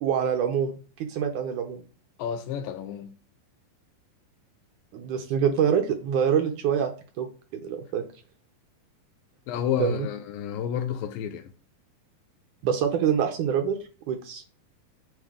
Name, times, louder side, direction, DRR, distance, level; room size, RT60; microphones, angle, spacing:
voice 1, 0.0-0.7 1.1-1.8 4.9-6.9 7.2-8.0 9.8-10.1 12.6-13.8 14.1-14.4, right 8 dB, 70° right, 2.0 m, -25 dB
voice 2, 2.2-3.1 9.5-11.5, left 9 dB, 75° left, 2.3 m, -30 dB
9.4 x 3.9 x 5.0 m
omnidirectional pair, 4.3 m